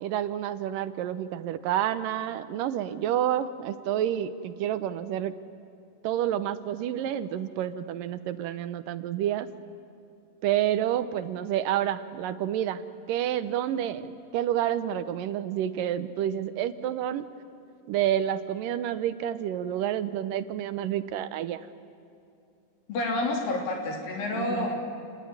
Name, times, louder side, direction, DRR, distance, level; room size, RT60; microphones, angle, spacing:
voice 1, 0.0-5.3 6.0-9.5 10.4-12.8 13.1-17.3 17.9-21.7 24.3-24.7, right 11 dB, 80° right, 12 dB, 2.5 m, -29 dB
voice 2, 22.9-24.7, left 2 dB, 80° left, 1 dB, 5.1 m, -29 dB
28.5 x 19.5 x 9.7 m, 2.6 s
omnidirectional pair, 4.0 m